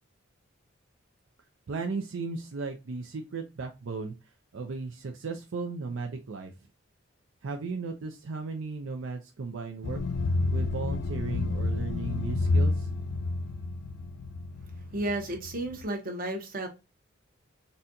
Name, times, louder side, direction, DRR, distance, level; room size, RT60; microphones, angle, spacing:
voice 1, 1.7-4.1 4.5-6.5 7.4-10.0 10.5-12.9, right 4 dB, 75° right, 0.5 m, -35 dB
sound 1, 9.8-15.8, left 2 dB, 60° left, 0.3 m, -29 dB
voice 2, 14.9-16.7, right 1 dB, 45° right, 0.9 m, -32 dB
4.1 x 2.3 x 2.6 m
head